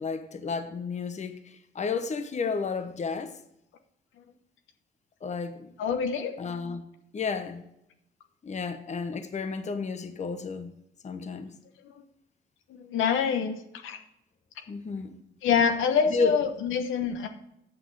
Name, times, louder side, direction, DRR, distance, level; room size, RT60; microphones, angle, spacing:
voice 1, 0.0-3.3 5.2-5.7 6.4-6.8 7.1-7.6 8.4-10.7 11.0-11.5 14.7-15.2 16.1-16.4, left 5 dB, 35° left, 0.9 m, -32 dB
voice 2, 5.8-6.3 11.9-12.0 12.7-14.0 15.4-17.3, left 6 dB, 80° left, 1.1 m, -26 dB
8.2 x 6.0 x 6.6 m
cardioid pair, 90°, 20 cm